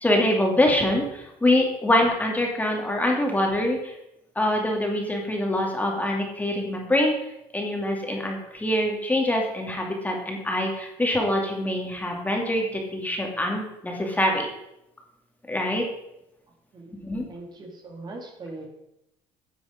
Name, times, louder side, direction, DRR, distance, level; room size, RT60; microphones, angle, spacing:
voice 1, 0.0-3.9 4.4-7.1 7.5-14.5 15.5-15.8 17.0-17.2, left 1 dB, 10° left, 0 dB, 2.5 m, -24 dB
voice 2, 16.7-18.7, right 2 dB, 35° right, 1 dB, 2.4 m, -41 dB
10.5 x 7.0 x 5.2 m, 0.83 s
supercardioid pair, 95°, 13 cm